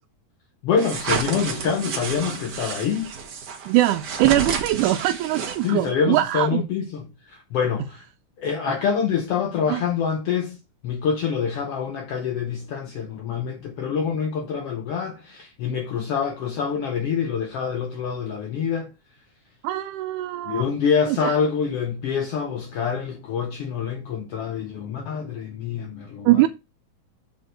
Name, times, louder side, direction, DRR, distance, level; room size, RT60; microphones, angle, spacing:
voice 1, 0.6-3.1 5.6-8.0 8.4-10.6 10.8-18.9 20.5-26.3, left 6 dB, 75° left, 1.4 m, -26 dB
sound 1, 0.8-5.9, right 5 dB, 60° right, 1.1 m, -30 dB
voice 2, 3.7-6.6 8.7-8.8 9.7-9.8 19.6-20.6 21.1-21.3 26.3-26.5, right 15 dB, 85° right, 2.1 m, -22 dB
6.7 x 4.4 x 6.3 m
omnidirectional pair, 3.5 m